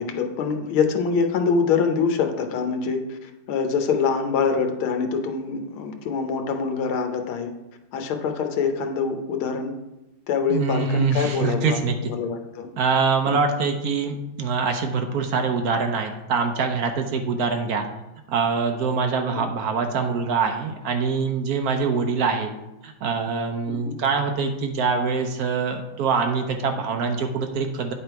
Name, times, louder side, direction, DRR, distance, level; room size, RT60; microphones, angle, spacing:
voice 1, 0.0-7.5 7.9-9.7 10.3-12.7 13.3-13.4 19.4-19.5 21.9-22.0 23.7-24.0, left 5 dB, 90° left, 5 dB, 1.6 m, -25 dB
voice 2, 10.5-12.1 12.8-17.8 18.3-22.5 22.8-27.9, right 5 dB, 70° right, 5 dB, 0.9 m, -24 dB
9.5 x 3.5 x 4.5 m, 0.95 s
omnidirectional pair, 2.2 m